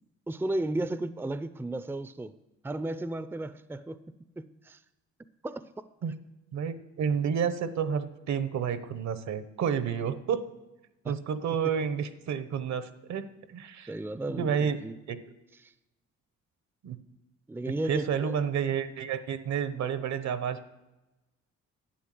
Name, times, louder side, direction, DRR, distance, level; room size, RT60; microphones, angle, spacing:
voice 1, 0.3-2.3 2.6-4.1 4.4-4.8 5.4-5.7 11.0-11.1 13.9-14.9 15.6-15.7 17.5-18.3, right 2 dB, 5° right, 14 dB, 0.5 m, -34 dB
voice 2, 6.5-10.4 11.0-13.9 14.3-14.8 15.1-15.2 16.8-17.0 17.9-20.7, right 7 dB, 65° right, 13 dB, 1.0 m, -30 dB
11.5 x 9.0 x 7.7 m, 1.0 s
cardioid pair, 90°, 30 cm